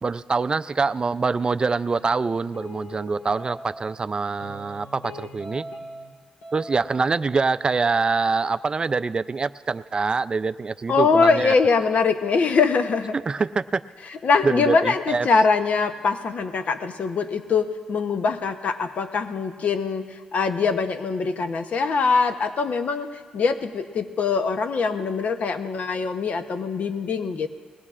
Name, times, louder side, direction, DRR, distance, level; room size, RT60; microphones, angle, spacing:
voice 1, 0.0-5.7 6.5-11.5 13.3-13.8 14.4-15.3, right 4 dB, 35° right, 13 dB, 0.4 m, -25 dB
sound 1, 1.9-4.0 4.4-6.1 6.4-7.1, left 1 dB, 85° left, 1.7 m, -41 dB
voice 2, 10.9-13.1 14.2-27.5, left 4 dB, 60° left, 8 dB, 0.8 m, -23 dB
21.0 x 18.0 x 2.5 m, 1.5 s
cardioid pair, 85°, 3 cm